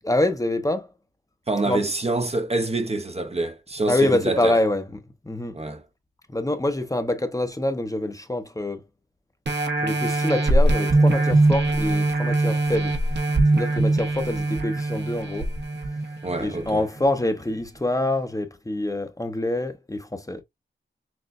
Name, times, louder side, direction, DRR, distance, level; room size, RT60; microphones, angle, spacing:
voice 1, 0.0-0.9 1.6-1.9 3.9-4.9 5.2-5.6 6.3-8.8 9.8-12.9 13.5-15.5 16.4-20.4, left 1 dB, 15° left, 0.7 m, -25 dB
voice 2, 1.5-4.6 5.5-5.8 16.2-16.9, right 2 dB, 30° right, 0.7 m, -26 dB
sound 1, 9.5-16.6 17.2-17.3, right 2 dB, 60° right, 1.0 m, -22 dB
6.2 x 2.2 x 2.5 m
wide cardioid pair, 95°, 20 cm